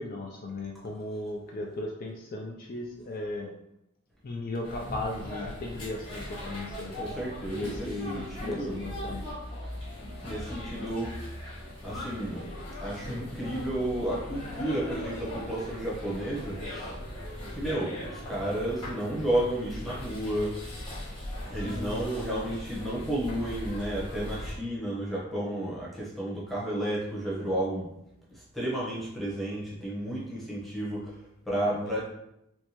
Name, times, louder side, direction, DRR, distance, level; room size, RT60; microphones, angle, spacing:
voice 1, 0.0-3.5 4.2-6.9 7.5-9.4 21.6-22.1 31.7-32.0, left 2 dB, 40° left, 0 dB, 0.3 m, -36 dB
sound 1, 4.6-24.5, left 1 dB, 25° left, 1.4 m, -39 dB
voice 2, 7.0-8.8 10.2-11.4 11.8-12.5 12.8-17.0 17.5-20.8 21.5-27.9 28.3-32.0, right 1 dB, ahead, -7 dB, 0.9 m, -32 dB
4.4 x 2.2 x 2.8 m, 0.82 s
head